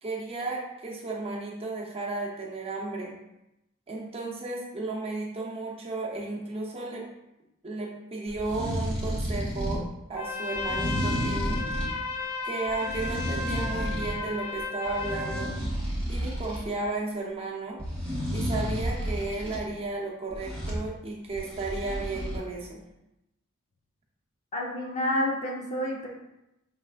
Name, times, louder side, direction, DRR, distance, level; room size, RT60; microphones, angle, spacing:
voice 1, 0.0-3.1 3.9-7.0 7.6-9.8 10.1-11.6 12.4-15.5 16.1-17.8 18.3-22.8, right 3 dB, 25° right, -3 dB, 0.8 m, -34 dB
sound 1, 8.3-9.9 10.6-12.0 12.7-14.2 14.6-16.7 17.8-19.6 20.3-20.8 21.3-22.4, equal, 5° left, 1.5 m, -31 dB
Trumpet, 10.1-15.6, left 3 dB, 85° left, 0.5 m, -34 dB
voice 2, 24.5-26.1, left 1 dB, 35° left, -2 dB, 0.8 m, -29 dB
5.3 x 3.7 x 2.4 m, 0.90 s
head